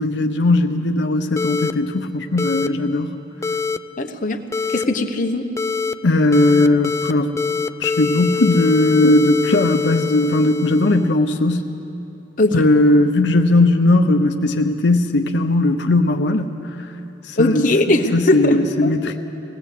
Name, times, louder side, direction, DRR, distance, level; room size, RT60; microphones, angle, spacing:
voice 1, 0.0-3.1 6.0-7.3 7.8-11.7 12.5-16.6 17.3-19.2, left 2 dB, 90° left, 5 dB, 0.8 m, -18 dB
sound 1, 1.4-1.7 2.4-2.7 3.4-3.8 4.5-4.8 5.6-5.9 6.3-7.1 7.4-11.1, left 5 dB, 15° left, 0.4 m, -24 dB
voice 2, 4.0-4.4 4.7-5.5 12.4-12.5 17.4-18.6, left 1 dB, 50° left, 4 dB, 1.1 m, -19 dB
20.0 x 17.0 x 8.3 m, 2.9 s
head